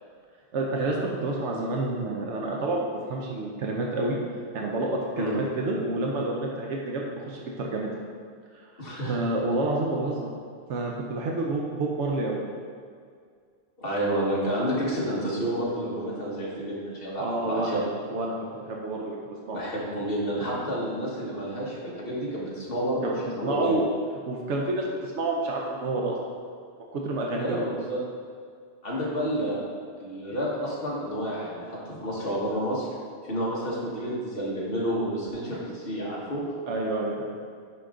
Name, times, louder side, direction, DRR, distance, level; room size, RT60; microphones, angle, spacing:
voice 1, 0.5-4.2 4.5-7.9 8.5-8.7 9.1-10.3 10.7-12.4 17.2-17.8 18.1-19.8 23.4-23.9 24.3-26.2 26.9-27.6 33.3-33.5 36.7-37.3, right 2 dB, 85° right, -1 dB, 1.1 m, -29 dB
voice 2, 8.8-9.2 13.8-17.8 19.5-23.7 27.4-28.0 28.8-29.6 30.0-32.9 33.2-36.4, equal, 55° left, -5 dB, 1.7 m, -30 dB
10.0 x 3.9 x 3.8 m, 2.1 s
omnidirectional pair, 1.2 m